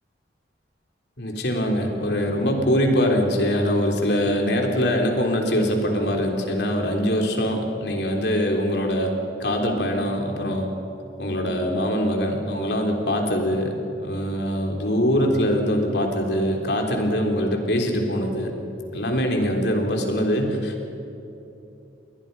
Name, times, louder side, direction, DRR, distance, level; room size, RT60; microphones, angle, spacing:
voice 1, 1.2-9.1 9.4-10.7 11.2-13.7 14.0-18.5 18.9-20.9, equal, 65° left, 2 dB, 3.6 m, -23 dB
29.5 x 21.5 x 5.6 m, 2.9 s
head